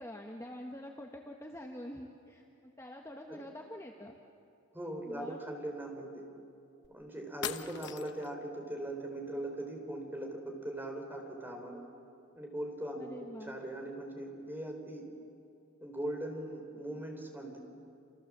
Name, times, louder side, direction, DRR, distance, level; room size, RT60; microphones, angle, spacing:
voice 1, 0.0-4.2 5.1-5.4 12.9-13.6, left 1 dB, 15° left, 1 dB, 1.3 m, -46 dB
voice 2, 4.7-6.3 6.9-11.8 12.4-13.1 13.4-15.0 15.8-17.6, right 1 dB, 10° right, 2 dB, 3.9 m, -40 dB
sound 1, 6.8-6.9 7.4-8.3, left 8 dB, 50° left, 1.0 m, -40 dB
28.0 x 27.5 x 7.5 m, 2.5 s
head